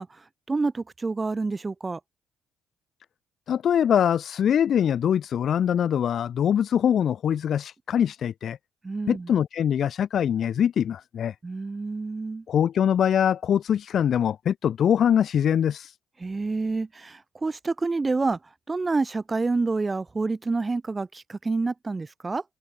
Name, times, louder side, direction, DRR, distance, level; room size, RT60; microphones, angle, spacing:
voice 1, 0.0-2.0 8.8-9.3 11.4-12.4 16.2-18.4 18.7-22.4, right 3 dB, 30° right, 7.5 m, -28 dB
voice 2, 3.5-8.6 9.1-11.4 12.5-16.0, left 9 dB, 55° left, 1.9 m, -23 dB
hypercardioid pair, 45°, 0 cm